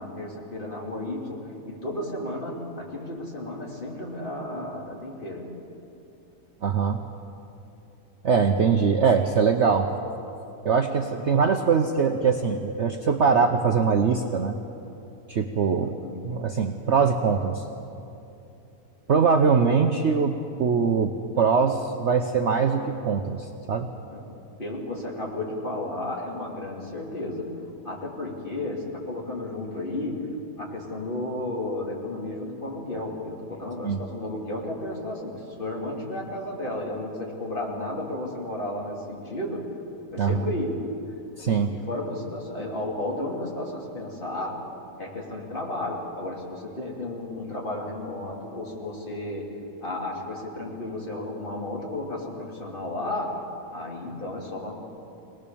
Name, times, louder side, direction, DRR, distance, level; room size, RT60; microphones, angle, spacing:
voice 1, 0.0-5.5 15.8-16.2 24.1-24.3 24.6-27.5 27.8-30.3 30.6-39.7 40.1-40.9 41.7-44.6 45.0-53.3 53.7-54.7, left 1 dB, 30° left, -2 dB, 3.2 m, -33 dB
voice 2, 6.6-7.0 8.2-9.9 10.6-14.5 15.3-16.0 16.2-17.6 19.1-23.9 33.8-34.0 40.2-40.4 41.4-41.7, right 5 dB, 50° right, 4 dB, 1.0 m, -22 dB
23.0 x 19.0 x 7.0 m, 2.7 s
omnidirectional pair, 1.8 m